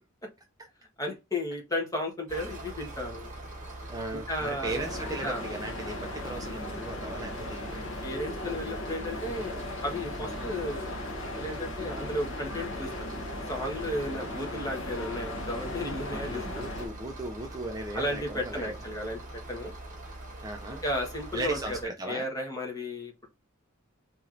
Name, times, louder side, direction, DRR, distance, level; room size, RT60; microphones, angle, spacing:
voice 1, 1.0-3.3 4.1-4.8 5.2-5.4 8.0-11.0 11.3-12.9 13.5-16.4 17.9-19.7 20.8-23.3, left 1 dB, 15° left, 1.2 m, -34 dB
sound 1, 2.3-21.9, right 1 dB, 40° right, 1.3 m, -43 dB
voice 2, 3.9-7.9 10.2-10.3 14.0-14.5 16.1-18.7 20.4-20.8 21.3-22.3, right 2 dB, 20° right, 0.4 m, -37 dB
sound 2, 4.6-16.9, left 1 dB, 65° left, 0.9 m, -37 dB
4.3 x 2.9 x 2.5 m
head